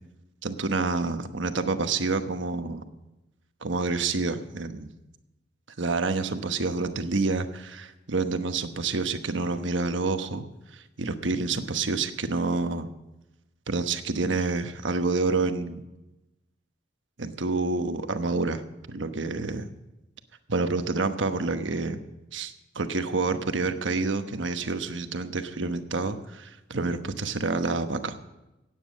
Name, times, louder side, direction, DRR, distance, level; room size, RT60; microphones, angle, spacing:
voice 1, 0.4-2.8 3.6-4.9 5.8-10.4 10.7-12.9 13.7-15.8 17.2-18.6 18.9-19.7 20.5-22.0 22.3-28.1, right 3 dB, 85° right, 9 dB, 1.1 m, -28 dB
15.5 x 9.4 x 6.4 m, 0.98 s
head